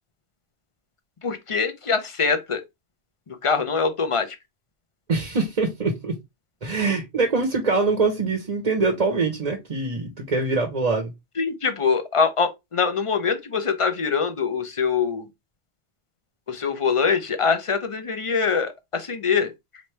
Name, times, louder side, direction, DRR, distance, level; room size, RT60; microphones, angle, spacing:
voice 1, 1.2-2.6 3.3-4.3 11.4-15.3 16.5-19.5, left 5 dB, 35° left, 0.6 m, -23 dB
voice 2, 5.1-6.1 6.6-11.1, right 3 dB, 40° right, 0.9 m, -23 dB
4.2 x 3.1 x 3.2 m
omnidirectional pair, 1.1 m